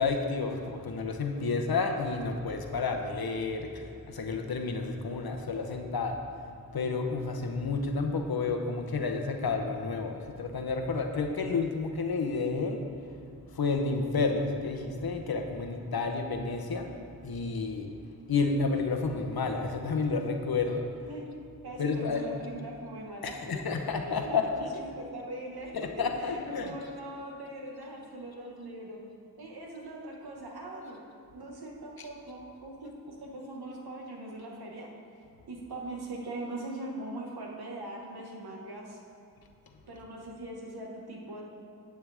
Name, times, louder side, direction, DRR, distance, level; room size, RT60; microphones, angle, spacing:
voice 1, 0.0-6.2 6.7-12.8 13.5-16.9 17.2-17.9 18.3-20.9 21.8-22.2 23.2-24.7 25.7-26.7, left 4 dB, 75° left, 4 dB, 0.9 m, -30 dB
voice 2, 21.6-23.6 23.9-29.0 29.4-31.0 31.3-34.9 35.5-39.0 39.9-41.4, right 1 dB, 90° right, -1 dB, 1.6 m, -41 dB
10.5 x 8.8 x 3.5 m, 2.6 s
cardioid pair, 60°, 37 cm